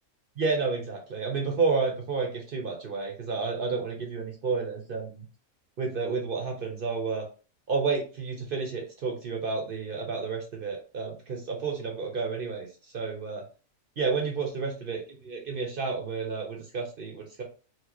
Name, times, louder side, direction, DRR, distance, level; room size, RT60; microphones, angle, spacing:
voice 1, 0.4-5.3 5.8-7.3 7.7-12.7 12.9-13.4 14.0-17.4, right 4 dB, 55° right, 2 dB, 0.6 m, -30 dB
4.2 x 2.1 x 2.9 m, 0.36 s
omnidirectional pair, 1.6 m